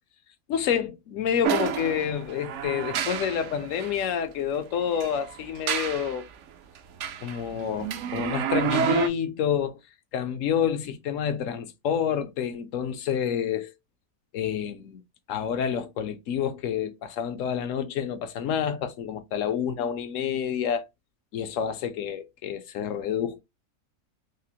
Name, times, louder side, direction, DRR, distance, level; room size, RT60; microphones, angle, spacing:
voice 1, 0.5-6.3 7.2-9.8 10.1-13.7 14.3-15.0 15.3-20.8 21.3-23.4, left 8 dB, 65° left, 0.9 m, -28 dB
sound 1, 1.4-4.0 4.9-6.2 6.8-9.1, right 9 dB, 70° right, 0.7 m, -29 dB
4.9 x 2.0 x 2.7 m
omnidirectional pair, 1.6 m